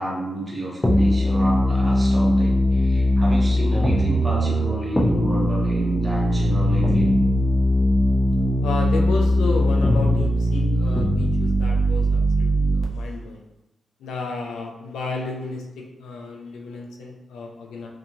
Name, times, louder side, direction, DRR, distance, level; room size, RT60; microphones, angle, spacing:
voice 1, 0.0-7.1, right 1 dB, 30° right, -4 dB, 1.1 m, -31 dB
sound 1, 0.8-12.8, equal, 15° left, 0.7 m, -20 dB
voice 2, 8.6-13.4 14.0-17.9, left 3 dB, 85° left, 0 dB, 0.4 m, -32 dB
2.7 x 2.4 x 2.6 m, 0.93 s
supercardioid pair, 40°, 0 cm